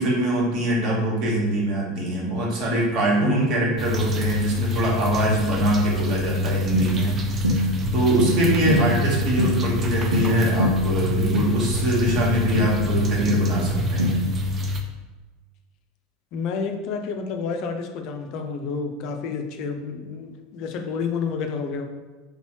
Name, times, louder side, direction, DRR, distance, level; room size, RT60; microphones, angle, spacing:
voice 1, 0.0-14.2, right 1 dB, 45° right, -3 dB, 1.4 m, -23 dB
voice 2, 3.2-3.6 8.6-8.9 16.3-21.8, left 5 dB, 50° left, 5 dB, 0.5 m, -29 dB
Bathroom tubes gurgling, 3.8-14.8, left 2 dB, 30° right, 0.5 m, -27 dB
sound 1, 6.7-14.4, right 1 dB, 85° right, 0.6 m, -26 dB
4.0 x 3.5 x 3.0 m, 1.3 s
figure-of-eight pair, 80°, 0 cm